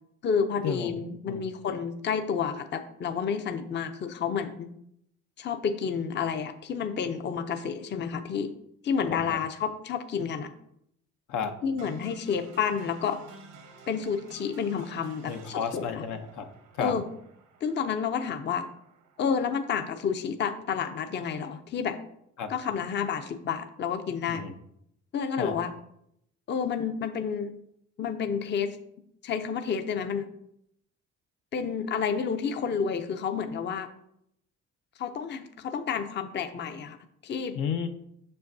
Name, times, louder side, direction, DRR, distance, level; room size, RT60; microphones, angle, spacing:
voice 1, 0.2-4.7 5.4-8.5 8.8-10.5 11.6-13.2 13.9-16.1 16.8-17.0 17.6-18.7 19.2-22.0 22.5-24.4 25.1-25.7 26.5-27.5 28.0-28.8 29.2-30.3 31.5-33.9 35.0-37.0 37.2-37.6, left 6 dB, 35° left, 9 dB, 0.5 m, -30 dB
sound 1, 11.8-19.8, right 4 dB, 90° right, 1.1 m, -53 dB
voice 2, 15.3-16.5 16.8-17.0 22.4-22.5 24.3-24.5 25.4-25.6 37.5-37.9, left 7 dB, 80° left, 7 dB, 0.7 m, -32 dB
6.4 x 5.5 x 2.6 m, 0.75 s
cardioid pair, 90°, 30 cm